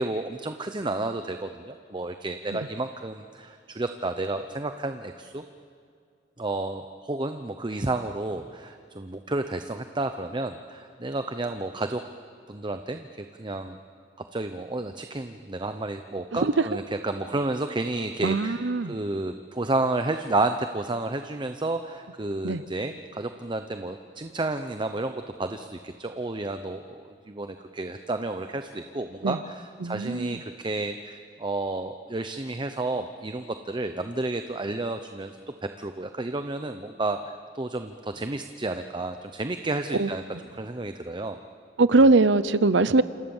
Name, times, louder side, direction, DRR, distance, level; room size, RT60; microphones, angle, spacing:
voice 1, 0.0-5.4 6.4-12.0 12.5-13.8 14.3-35.3 35.6-37.2 37.5-40.2 40.5-41.4, right 2 dB, 25° right, 7 dB, 0.8 m, -31 dB
voice 2, 16.3-16.7 18.2-19.0 22.4-22.6 29.2-29.4 29.8-30.4 39.9-40.1 41.8-43.0, right 3 dB, 80° right, 15 dB, 0.8 m, -21 dB
28.0 x 27.5 x 7.3 m, 2.3 s
head